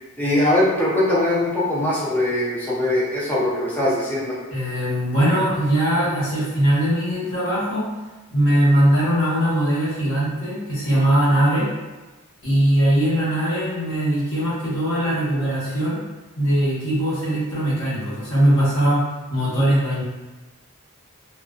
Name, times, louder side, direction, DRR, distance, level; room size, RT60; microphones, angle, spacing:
voice 1, 0.2-4.4, left 1 dB, 10° left, -7 dB, 0.4 m, -21 dB
voice 2, 4.5-7.9 8.3-11.6 12.4-16.0 16.4-19.0 19.3-20.0, right 1 dB, 60° left, -9 dB, 1.0 m, -20 dB
2.4 x 2.2 x 2.3 m, 1.2 s
head